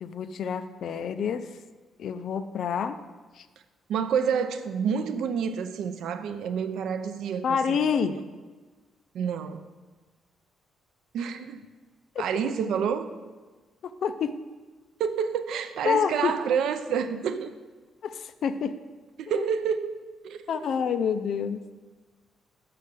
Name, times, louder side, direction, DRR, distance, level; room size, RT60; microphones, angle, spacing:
voice 1, 0.0-1.5 2.0-3.0 3.3-3.5 7.4-8.2 12.2-12.3 13.8-14.4 15.8-16.4 18.0-18.8 19.3-19.5 20.5-21.7, left 6 dB, 55° left, 11 dB, 0.4 m, -28 dB
voice 2, 3.9-7.8 9.1-9.6 11.1-11.6 12.2-13.1 15.0-17.5 19.2-20.5, right 7 dB, 70° right, 10 dB, 0.5 m, -28 dB
6.3 x 5.8 x 6.7 m, 1.3 s
cardioid pair, 160°, 0 cm